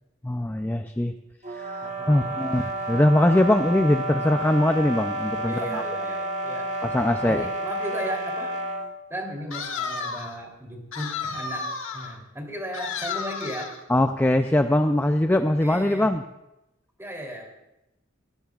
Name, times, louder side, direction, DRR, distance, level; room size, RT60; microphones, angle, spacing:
voice 1, 0.2-1.1 1.5-2.6 2.9-5.8 6.8-7.5 13.9-16.2, left 1 dB, 10° left, 6 dB, 0.5 m, -22 dB
sound 1, 1.4-8.9, right 1 dB, 35° right, 1.2 m, -30 dB
voice 2, 1.8-2.5 5.5-6.7 7.2-8.5 9.1-13.7 15.3-16.1 17.0-17.5, equal, 15° right, 0 dB, 3.3 m, -36 dB
sound 2, 9.5-10.4 10.9-12.2 12.7-13.8, left 5 dB, 75° left, 1.5 m, -32 dB
26.5 x 17.0 x 2.4 m, 0.91 s
head